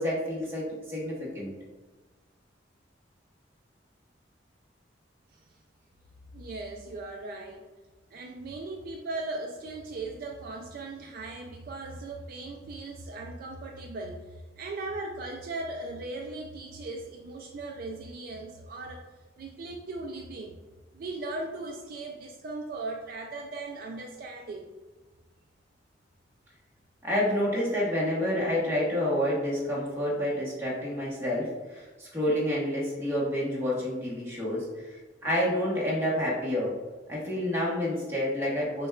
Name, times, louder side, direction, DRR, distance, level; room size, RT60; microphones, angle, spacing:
voice 1, 0.0-1.5 27.0-36.7 37.1-38.9, left 1 dB, 15° right, -6 dB, 1.1 m, -29 dB
voice 2, 6.3-7.6 8.1-19.0 19.4-20.6 20.9-24.6, right 2 dB, 55° right, 1 dB, 0.3 m, -38 dB
6.4 x 2.2 x 2.3 m, 1.3 s
head